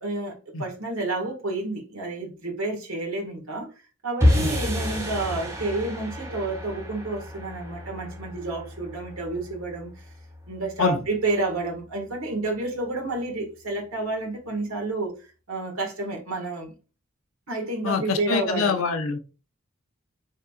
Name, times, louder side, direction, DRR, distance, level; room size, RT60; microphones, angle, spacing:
voice 1, 0.0-3.7 4.0-10.1 10.5-16.7 17.5-18.8, right 2 dB, 70° right, 1.8 m, -30 dB
sound 1, 4.2-10.6, left 1 dB, 10° right, 2.2 m, -28 dB
voice 2, 17.8-19.2, left 5 dB, 70° left, 0.6 m, -25 dB
5.3 x 3.7 x 2.4 m
head